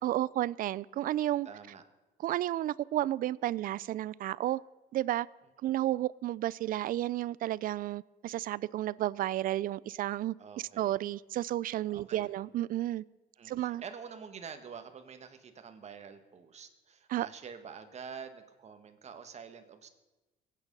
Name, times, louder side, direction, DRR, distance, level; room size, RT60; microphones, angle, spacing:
voice 1, 0.0-1.5 2.2-4.6 4.9-5.3 5.6-10.3 10.8-13.0 13.5-13.8 17.1-17.3, right 14 dB, 55° right, 0.4 m, -32 dB
voice 2, 1.4-1.8 10.4-11.0 11.9-12.3 13.4-19.9, right 6 dB, 40° right, 1.6 m, -47 dB
22.0 x 9.0 x 5.4 m
cardioid pair, 110°, 17 cm